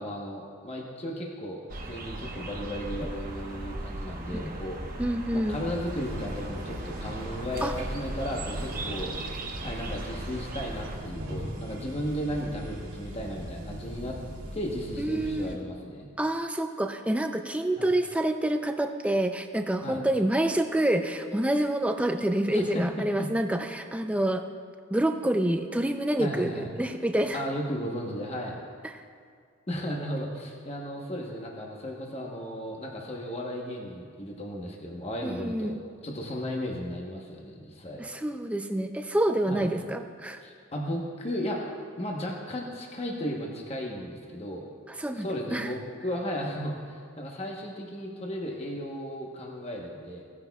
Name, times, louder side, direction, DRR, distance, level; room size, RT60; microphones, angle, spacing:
voice 1, 0.0-4.8 5.3-9.1 9.6-14.2 14.5-16.1 17.8-17.9 19.8-20.0 22.5-23.3 26.2-26.7 27.3-28.6 29.7-35.8 36.0-38.0 39.5-39.7 40.4-41.6 42.0-44.7 45.2-50.2, equal, 30° left, -1 dB, 1.0 m, -35 dB
sound 1, 1.7-11.0, right 2 dB, 45° right, 0.9 m, -38 dB
voice 2, 5.0-5.6 7.6-7.7 15.0-15.6 16.2-24.4 24.9-27.4 35.2-35.8 38.0-40.4 45.0-45.3 45.5-45.7, right 1 dB, 5° right, 6 dB, 0.4 m, -27 dB
sound 2, 5.5-15.6, equal, 75° right, 2.3 m, -39 dB
17.0 x 9.7 x 2.3 m, 2.1 s
head